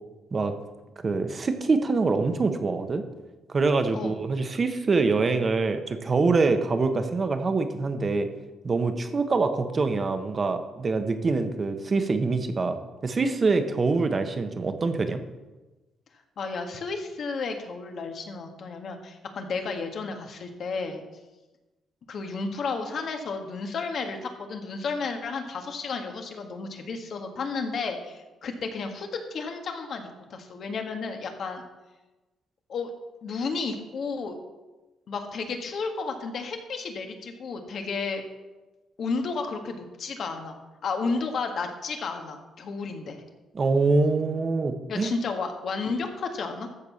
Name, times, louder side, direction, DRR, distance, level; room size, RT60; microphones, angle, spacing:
voice 1, 1.0-3.0 3.5-8.3 8.6-12.8 13.0-15.2 43.5-45.1, right 3 dB, 35° right, 8 dB, 1.2 m, -25 dB
voice 2, 16.4-21.0 22.1-31.6 32.7-32.9 33.2-34.4 35.1-38.2 39.0-43.2 44.9-46.7, left 4 dB, 60° left, 4 dB, 1.7 m, -32 dB
13.5 x 4.7 x 7.1 m, 1.1 s
cardioid pair, 90°, 0 cm